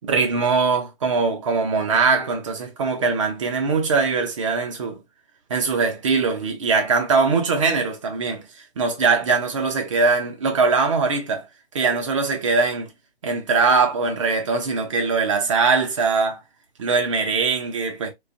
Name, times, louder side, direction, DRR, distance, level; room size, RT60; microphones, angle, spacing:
voice 1, 0.0-5.0 5.5-8.4 8.8-11.4 11.7-12.9 13.2-16.4 16.8-18.1, right 4 dB, 30° right, 0.6 m, -21 dB
2.4 x 2.3 x 2.4 m
figure-of-eight pair, 140°, 32 cm